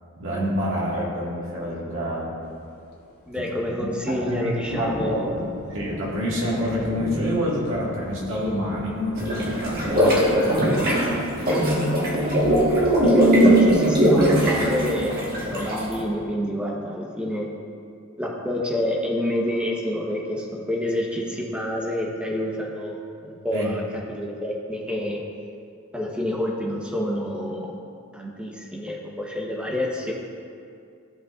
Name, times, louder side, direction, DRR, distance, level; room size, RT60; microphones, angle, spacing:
voice 1, 0.2-2.3 3.3-3.4 3.8-11.5 23.5-23.7, equal, 60° right, -5 dB, 2.0 m, -28 dB
sound 1, 2.4-16.2, left 1 dB, 75° left, 1.3 m, -38 dB
voice 2, 3.3-5.3 9.9-10.4 13.0-17.5 18.2-23.0 23.2-23.8 24.1-25.2 25.9-27.7 28.1-30.1, left 1 dB, 5° right, -2 dB, 1.0 m, -28 dB
sound 2, 9.2-15.9, right 1 dB, 40° right, 1.5 m, -20 dB
15.0 x 5.4 x 2.5 m, 2.3 s
head